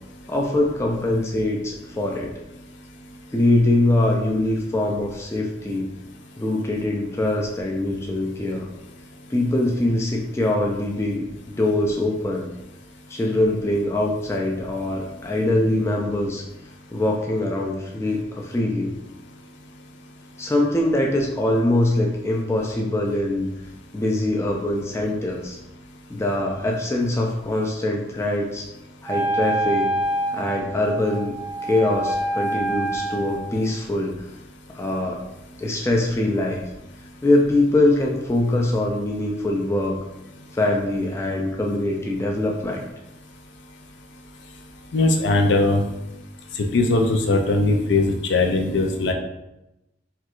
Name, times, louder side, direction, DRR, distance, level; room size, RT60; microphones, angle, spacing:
voice 1, 0.3-2.3 3.3-5.9 6.4-8.7 9.3-12.5 13.1-16.4 16.9-18.9 20.4-23.5 23.9-25.6 26.1-28.7 29.0-29.9 30.3-31.3 31.6-34.3 34.7-35.2 35.6-36.6 37.2-40.0 40.5-42.9, left 1 dB, 15° left, 0 dB, 0.3 m, -23 dB
Wind instrument woodwind instrument, 29.0-33.6, right 1 dB, 5° right, 0.8 m, -26 dB
voice 2, 44.9-45.8 46.6-49.1, left 2 dB, 80° left, 3 dB, 0.4 m, -20 dB
4.3 x 2.3 x 2.4 m, 0.92 s
head